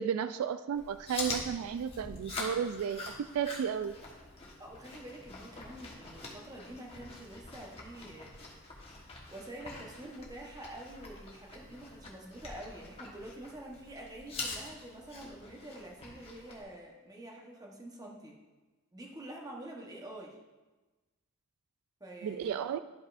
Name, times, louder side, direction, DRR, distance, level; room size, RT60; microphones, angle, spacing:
voice 1, 0.0-4.0 22.2-22.8, right 8 dB, 85° right, 13 dB, 0.3 m, -33 dB
Chewing mastication, 0.7-16.6, left 3 dB, 25° left, 1.2 m, -45 dB
voice 2, 4.6-18.3 18.9-20.4 22.0-22.6, right 1 dB, 15° right, -1 dB, 1.0 m, -47 dB
12.0 x 5.3 x 2.5 m, 1.2 s
head